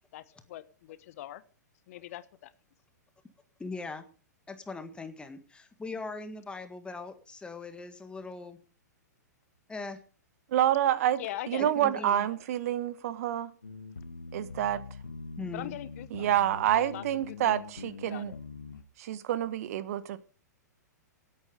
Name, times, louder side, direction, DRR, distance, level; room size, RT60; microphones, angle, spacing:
voice 1, 0.1-1.4 1.9-2.5 11.2-11.7 15.5-16.3 16.8-17.5 17.8-18.4, left 14 dB, 55° left, 1.3 m, -42 dB
voice 2, 3.6-4.0 4.5-8.6 9.7-10.0 11.6-12.2 15.4-15.8, left 3 dB, 10° left, 1.7 m, -40 dB
voice 3, 10.5-11.2 11.5-13.5 14.3-14.8 16.1-18.3 19.0-20.2, right 11 dB, 55° right, 1.3 m, -28 dB
sound 1, 13.6-18.8, left 3 dB, 90° left, 1.4 m, -43 dB
17.5 x 8.9 x 5.2 m
hypercardioid pair, 110°, 10 cm